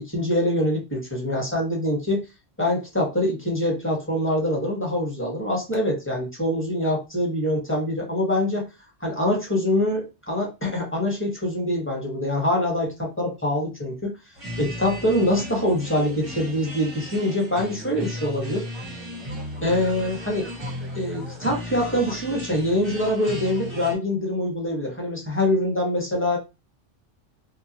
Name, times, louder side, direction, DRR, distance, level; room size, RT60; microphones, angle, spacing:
voice 1, 0.0-2.2 2.6-8.7 9.0-14.1 14.6-18.7 19.6-20.5 20.9-26.4, left 1 dB, 10° left, -2 dB, 1.0 m, -24 dB
sound 1, 14.3-23.9, equal, 30° right, 0.6 m, -35 dB
2.9 x 2.3 x 2.8 m, 0.26 s
omnidirectional pair, 1.2 m